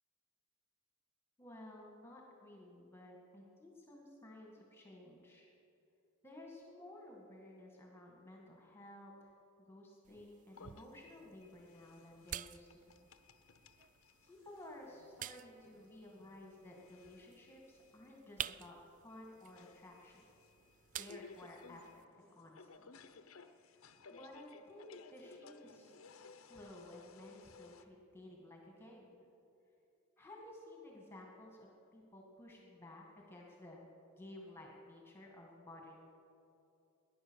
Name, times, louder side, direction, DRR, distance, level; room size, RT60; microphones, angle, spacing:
voice 1, 1.4-5.5 6.2-9.3 9.7-13.1 14.2-18.8 19.0-20.2 21.0-22.9 23.5-23.8 24.1-26.1 26.5-29.2 30.2-35.9, left 1 dB, 10° left, -1 dB, 2.2 m, -55 dB
sound 1, 10.0-22.1, right 10 dB, 35° right, 0.3 m, -51 dB
sound 2, 10.5-27.8, left 4 dB, 75° left, 0.8 m, -60 dB
20.0 x 10.5 x 6.5 m, 2.6 s
head